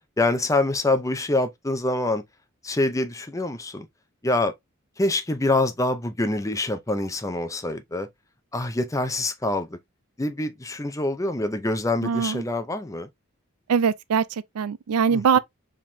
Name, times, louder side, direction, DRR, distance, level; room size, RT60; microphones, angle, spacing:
voice 1, 0.2-2.2 2.6-3.9 4.2-4.5 5.0-8.1 8.5-9.8 10.2-13.1 15.1-15.4, left 2 dB, 15° left, 0.6 m, -25 dB
voice 2, 12.0-12.4 13.7-15.4, right 6 dB, 85° right, 0.4 m, -22 dB
4.7 x 3.6 x 2.7 m
head